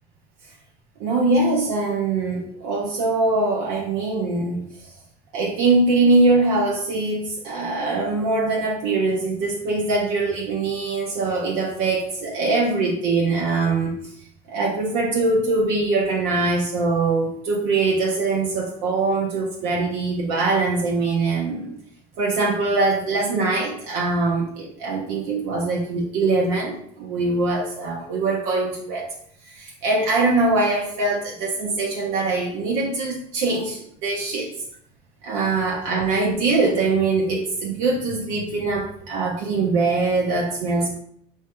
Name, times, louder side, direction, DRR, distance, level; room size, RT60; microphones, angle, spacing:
voice 1, 1.0-4.6 5.3-13.9 14.5-21.7 22.2-29.1 29.5-34.5 35.2-41.0, right 3 dB, 75° right, -3 dB, 0.8 m, -22 dB
3.1 x 2.7 x 3.4 m, 0.68 s
supercardioid pair, 95°, 17 cm